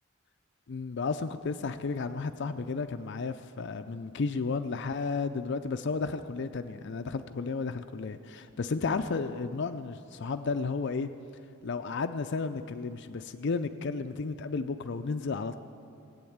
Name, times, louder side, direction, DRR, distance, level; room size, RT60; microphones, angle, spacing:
voice 1, 0.7-11.1 11.6-15.6, left 4 dB, 55° left, 8 dB, 0.5 m, -33 dB
17.0 x 8.7 x 8.7 m, 2.5 s
head